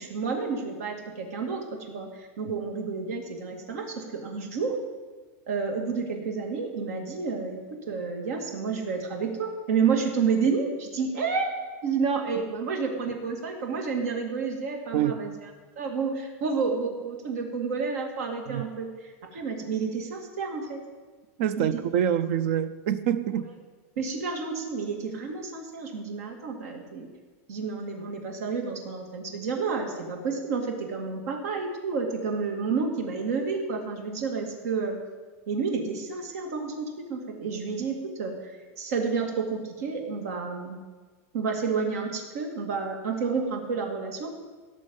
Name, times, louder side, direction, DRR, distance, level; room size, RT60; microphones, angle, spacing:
voice 1, 0.0-4.8 5.5-7.6 7.9-11.5 11.8-15.3 15.8-20.8 21.6-21.7 24.0-27.1 27.5-35.0 35.5-40.8 41.3-44.3, right 5 dB, 85° right, 2.3 m, -30 dB
voice 2, 21.4-23.5, right 9 dB, 60° right, 0.6 m, -26 dB
17.0 x 6.5 x 5.4 m
supercardioid pair, 155°, 8 cm